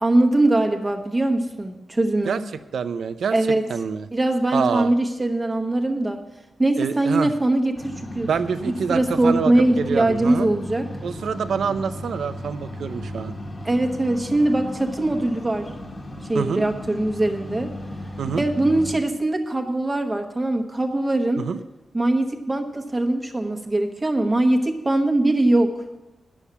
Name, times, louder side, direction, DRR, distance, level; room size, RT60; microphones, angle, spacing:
voice 1, 0.0-2.4 3.3-3.7 4.1-6.2 6.6-8.3 8.6-10.9 13.6-15.7 16.3-17.7 18.3-21.4 21.9-25.7, right 2 dB, 20° right, 3 dB, 1.1 m, -21 dB
voice 2, 2.7-3.4 3.7-4.1 4.5-4.9 6.8-7.3 8.2-10.5 11.0-13.3 16.3-16.6 18.2-18.5 21.4-21.6, right 6 dB, 90° right, 11 dB, 0.5 m, -26 dB
sound 1, 7.7-19.0, left 1 dB, 30° left, 1.3 m, -35 dB
10.0 x 7.2 x 8.2 m, 1.1 s
wide cardioid pair, 125°, 0 cm